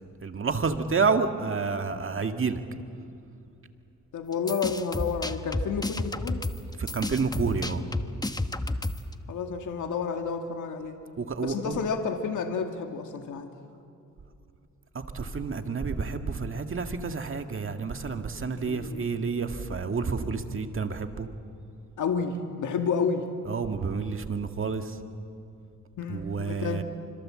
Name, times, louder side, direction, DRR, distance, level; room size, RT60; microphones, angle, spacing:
voice 1, 0.2-2.6 6.9-7.8 11.2-11.8 15.1-21.3 23.5-24.8 26.1-26.8, right 5 dB, 40° right, 6 dB, 1.9 m, -29 dB
voice 2, 4.1-6.4 9.3-11.0 11.4-13.5 18.6-19.1 22.0-23.3 26.0-26.8, left 5 dB, 65° left, 4 dB, 2.0 m, -30 dB
sound 1, 4.3-9.1, left 2 dB, 10° left, 1.1 m, -31 dB
26.0 x 26.0 x 7.6 m, 2.5 s
cardioid pair, 85°, 32 cm